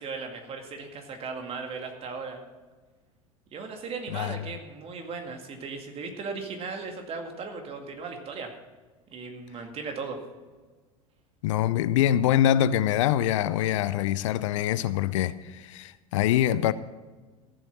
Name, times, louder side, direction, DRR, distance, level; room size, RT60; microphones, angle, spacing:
voice 1, 0.0-2.4 3.5-8.5 9.1-10.2, right 4 dB, 35° right, 2.1 m, -37 dB
voice 2, 11.4-16.7, left 11 dB, 60° left, 0.5 m, -24 dB
15.0 x 7.6 x 6.1 m
figure-of-eight pair, 80°, 18 cm